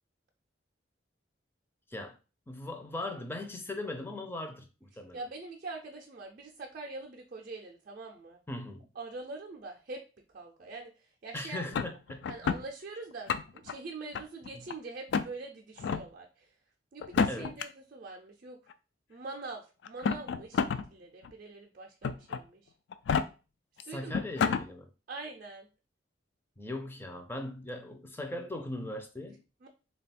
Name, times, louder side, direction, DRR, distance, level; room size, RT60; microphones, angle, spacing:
voice 1, 2.5-5.3 8.5-8.9 11.3-12.3 14.5-14.7 17.3-17.5 23.8-24.9 26.6-29.4, left 1 dB, 10° left, 0.5 m, -39 dB
voice 2, 5.1-8.4 9.0-10.0 10.3-10.9 11.2-11.7 12.3-16.5 16.9-18.6 19.1-20.6 20.9-22.6 23.8-24.2 25.1-25.7 29.6-29.7, right 3 dB, 50° right, 0.5 m, -43 dB
sound 1, 11.7-12.6 13.1-13.7 14.1-14.7 15.1-15.3 15.8-16.0 17.0-17.6 18.7-18.8 19.8-20.8 21.2-21.3 22.0-22.4 22.9-23.2 23.8-23.9 24.1-24.6, left 5 dB, 75° left, 0.3 m, -29 dB
3.5 x 2.3 x 4.1 m
head